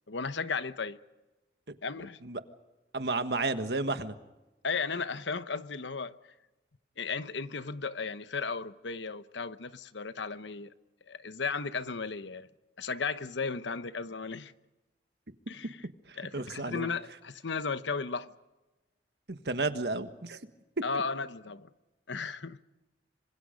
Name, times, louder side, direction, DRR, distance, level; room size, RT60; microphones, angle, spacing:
voice 1, 0.1-1.0 1.8-2.2 4.6-6.2 7.0-10.7 11.1-12.5 12.8-14.5 15.5-15.8 16.2-18.3 20.8-21.7 22.1-22.6, left 4 dB, 85° left, 1.0 m, -35 dB
voice 2, 2.9-4.1 16.1-16.9 19.3-20.4, right 3 dB, 60° right, 1.5 m, -32 dB
27.0 x 26.0 x 5.2 m
head